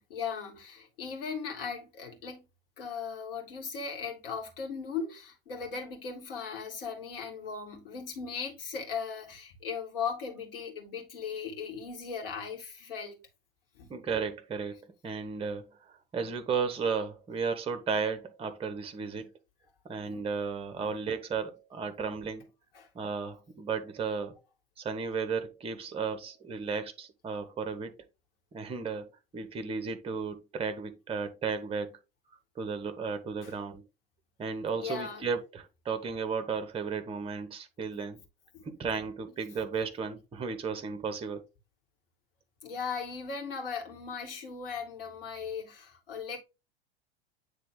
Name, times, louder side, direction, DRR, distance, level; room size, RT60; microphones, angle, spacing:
voice 1, 0.0-2.4 2.8-13.2 13.7-13.9 19.1-19.2 20.0-20.3 20.8-20.9 22.7-22.9 33.4-33.5 34.8-35.3 38.5-38.7 42.6-46.4, left 6 dB, 60° left, 2.4 m, -38 dB
voice 2, 13.9-19.3 19.8-22.5 22.9-24.4 24.8-27.9 28.5-32.0 32.6-33.8 34.4-38.2 38.6-41.4, right 5 dB, 20° right, 1.0 m, -34 dB
9.0 x 3.5 x 3.8 m
figure-of-eight pair, 80°, 31 cm